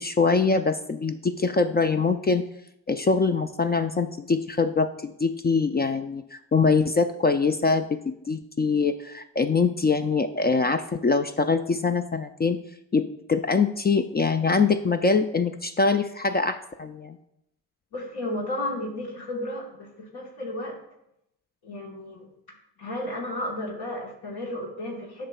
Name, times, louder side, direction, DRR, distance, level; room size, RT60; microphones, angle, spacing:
voice 1, 0.0-2.4 2.9-12.6 12.9-17.2, left 4 dB, 25° left, 8 dB, 0.3 m, -23 dB
voice 2, 17.9-20.8 21.6-22.3 22.8-25.3, left 1 dB, 70° left, -3 dB, 1.4 m, -33 dB
8.5 x 5.6 x 2.3 m, 0.80 s
supercardioid pair, 45°, 41 cm